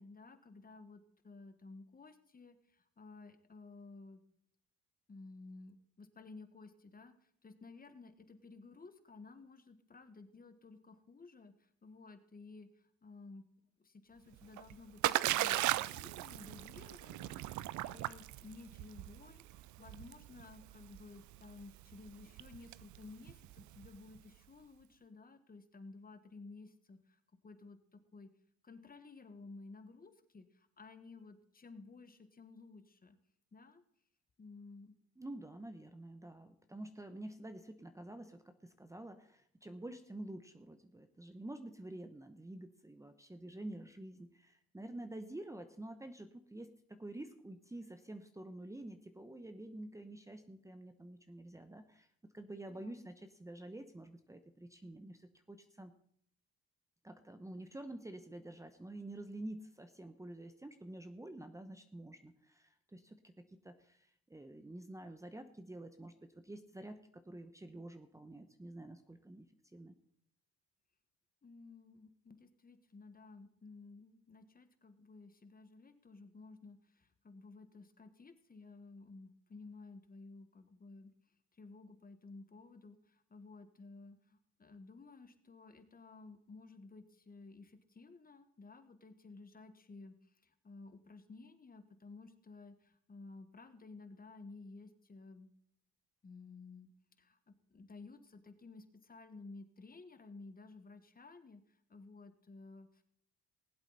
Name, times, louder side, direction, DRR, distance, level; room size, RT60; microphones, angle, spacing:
voice 1, 0.0-4.2 5.1-13.4 13.8-28.3 28.6-33.2 33.5-33.8 34.4-35.0 52.7-53.0 71.4-81.1 81.5-95.5 96.2-96.9 97.2-103.0, left 3 dB, 30° left, 9 dB, 1.4 m, -55 dB
Splash splatter, 14.3-24.2, right 15 dB, 70° right, 0.5 m, -38 dB
voice 2, 35.2-52.1 52.3-55.9 57.0-66.1 66.4-69.5 69.7-69.9, right 1 dB, 10° right, 8 dB, 0.9 m, -49 dB
19.0 x 8.0 x 4.1 m, 0.67 s
supercardioid pair, 75°, 30 cm